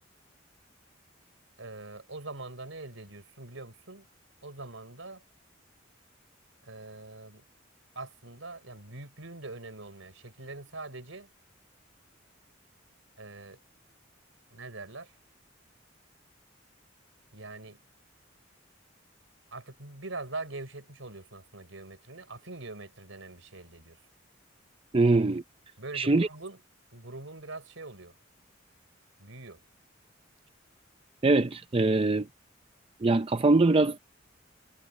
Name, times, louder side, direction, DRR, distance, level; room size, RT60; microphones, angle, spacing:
voice 1, 1.6-4.1 4.4-5.2 6.6-7.4 7.9-11.3 13.2-13.6 14.5-15.1 17.3-17.8 19.5-24.0 25.8-26.6 26.9-28.1 29.2-29.6, right 2 dB, 75° right, 4.5 m, -43 dB
voice 2, 24.9-25.4 25.9-26.3 31.2-32.3 33.0-34.0, right 2 dB, 30° right, 0.6 m, -23 dB
head